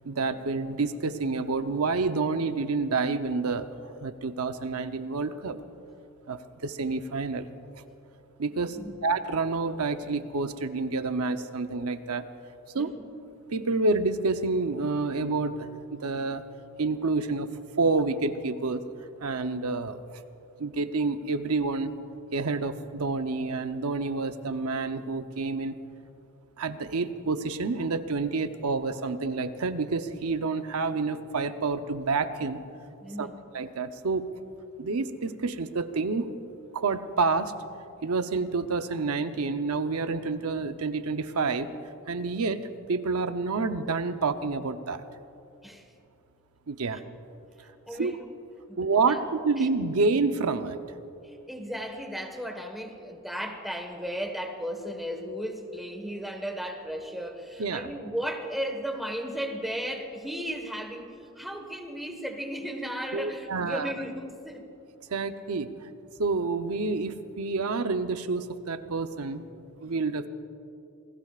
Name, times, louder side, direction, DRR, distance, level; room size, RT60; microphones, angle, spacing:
voice 1, 0.0-3.7 4.0-5.6 6.3-7.5 8.4-8.8 9.0-12.2 12.7-12.9 13.5-16.4 16.8-17.5 17.8-18.8 19.2-20.2 20.6-21.9 22.3-25.7 26.6-32.6 33.2-33.3 33.5-34.3 34.8-36.3 36.7-37.5 38.0-41.7 42.1-45.0 46.7-47.0 48.0-48.1 48.8-50.8 57.6-57.9 63.1-63.9 65.1-65.7 66.2-69.4 69.8-70.3, right 3 dB, 75° right, 9 dB, 0.8 m, -28 dB
voice 2, 33.0-33.4 45.6-45.9 47.9-48.2 48.7-49.2 49.6-49.7 51.2-64.6, equal, ahead, 3 dB, 1.4 m, -35 dB
28.0 x 20.0 x 2.5 m, 2.7 s
head